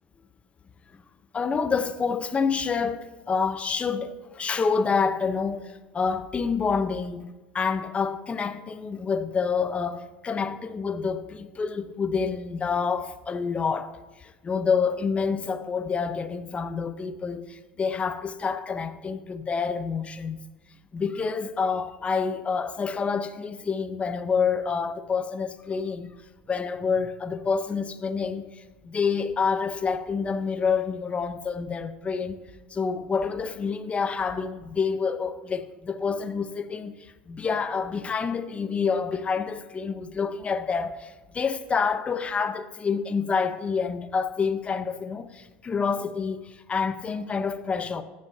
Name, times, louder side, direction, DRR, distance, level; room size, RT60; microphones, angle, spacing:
voice 1, 1.3-20.4 20.9-26.2 26.5-32.4 32.7-48.0, left 5 dB, 25° left, 0.8 m, -28 dB
14.5 x 9.8 x 2.8 m
hypercardioid pair, 90°, 5 cm